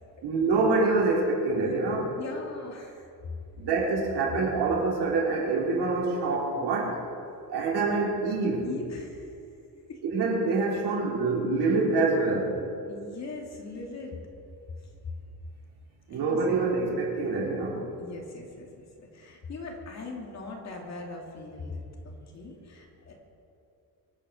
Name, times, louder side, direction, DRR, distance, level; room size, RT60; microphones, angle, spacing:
voice 1, 0.2-2.2 3.6-7.0 7.5-8.7 10.1-12.6 16.1-17.9, right 3 dB, 85° right, -3 dB, 4.0 m, -26 dB
voice 2, 2.1-3.3 8.6-9.3 9.9-10.0 12.9-14.2 16.1-16.6 18.0-18.8 19.1-23.1, left 3 dB, 40° left, 0 dB, 2.7 m, -40 dB
24.0 x 8.9 x 6.5 m, 2.5 s
cardioid pair, 180°, 39 cm